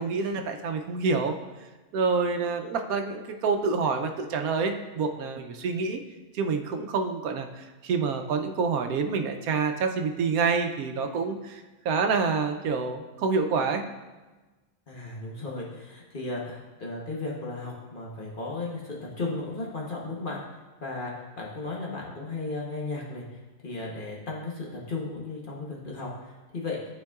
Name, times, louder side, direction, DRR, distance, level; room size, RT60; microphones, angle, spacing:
voice 1, 0.0-1.3 1.9-6.0 6.3-13.8, right 4 dB, 80° right, 5 dB, 1.1 m, -27 dB
voice 2, 14.9-20.4 20.8-23.2 23.6-26.8, left 3 dB, 40° left, -3 dB, 1.1 m, -35 dB
11.5 x 4.4 x 2.3 m, 1.2 s
omnidirectional pair, 1.5 m